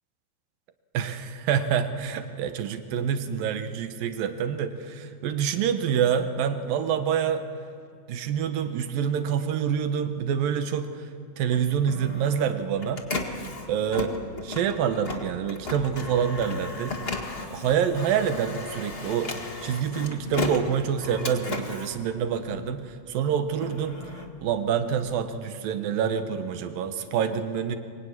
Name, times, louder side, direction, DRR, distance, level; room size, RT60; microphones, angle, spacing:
voice 1, 0.9-7.4 8.1-10.9 11.4-13.0 13.7-14.2 14.4-17.0 17.5-19.3 19.6-24.0 24.4-27.8, right 8 dB, 80° right, 9 dB, 2.9 m, -27 dB
Printer, 11.5-22.9 23.3-25.2, left 2 dB, 40° left, 0.8 m, -35 dB
23.0 x 22.5 x 9.7 m, 2.4 s
omnidirectional pair, 4.0 m